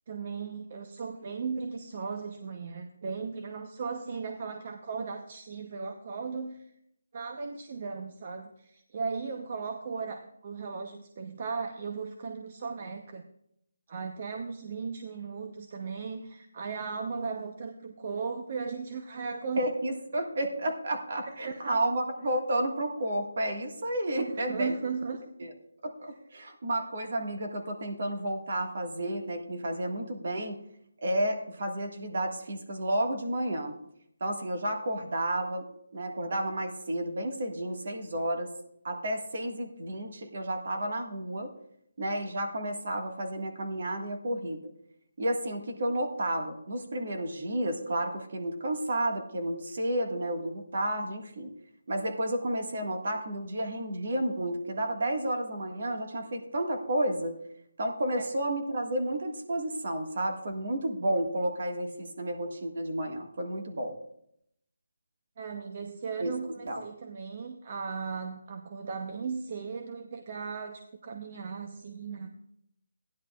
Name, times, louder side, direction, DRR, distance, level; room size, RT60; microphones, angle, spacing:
voice 1, 0.1-6.7 7.1-13.2 13.9-19.6 21.2-21.8 24.1-25.2 58.2-58.3 65.4-72.3, right 5 dB, 40° right, 5 dB, 0.8 m, -37 dB
voice 2, 19.6-24.7 25.4-25.5 25.8-30.6 31.0-33.7 34.2-35.7 35.9-38.5 38.8-41.5 42.0-44.6 45.2-51.5 51.9-57.4 57.8-64.0 66.2-66.3 66.6-66.8, right 1 dB, 55° right, 3 dB, 1.7 m, -31 dB
15.5 x 10.5 x 2.4 m, 0.74 s
figure-of-eight pair, 160°, 0 cm